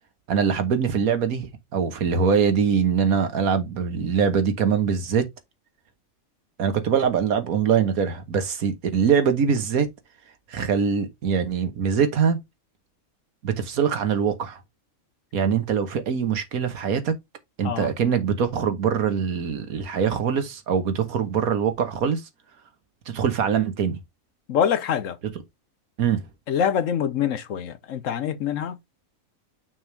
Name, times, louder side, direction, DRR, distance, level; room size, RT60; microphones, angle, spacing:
voice 1, 0.3-5.3 6.6-9.9 10.5-12.4 13.4-14.6 15.3-17.1 17.6-22.2 23.1-24.0 25.2-25.3 26.0-26.2, right 7 dB, 85° right, 1.6 m, -23 dB
voice 2, 24.5-25.2 26.5-28.8, left 8 dB, 70° left, 1.1 m, -25 dB
6.2 x 3.6 x 4.6 m
omnidirectional pair, 1.5 m